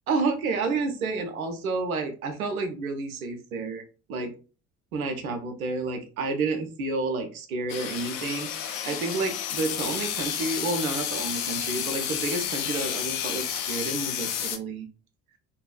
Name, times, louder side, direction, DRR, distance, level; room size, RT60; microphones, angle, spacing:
voice 1, 0.1-3.8 4.1-4.3 4.9-14.9, right 3 dB, 80° right, 6 dB, 0.6 m, -30 dB
sound 1, 7.7-14.6, left 9 dB, 60° left, 0.5 m, -31 dB
2.6 x 2.3 x 2.2 m, 0.36 s
figure-of-eight pair, 50°, 42 cm